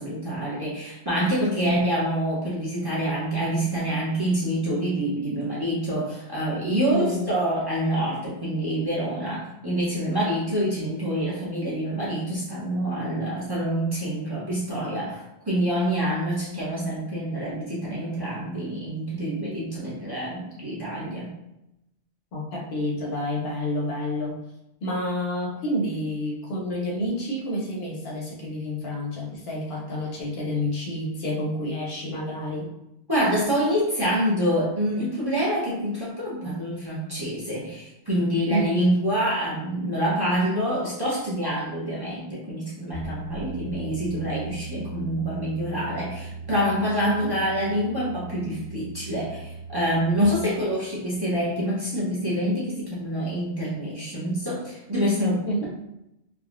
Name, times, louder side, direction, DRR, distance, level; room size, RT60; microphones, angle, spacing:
voice 1, 0.0-21.3 33.1-55.7, equal, 25° right, -7 dB, 0.6 m, -26 dB
voice 2, 6.9-7.3 22.3-24.4 24.8-32.7 38.5-38.8 47.1-47.3 50.2-50.6 55.5-55.7, equal, 70° left, -2 dB, 0.9 m, -29 dB
sound 1, 42.9-50.2, right 3 dB, 60° right, 1.0 m, -38 dB
3.4 x 2.0 x 2.4 m, 0.87 s
omnidirectional pair, 1.1 m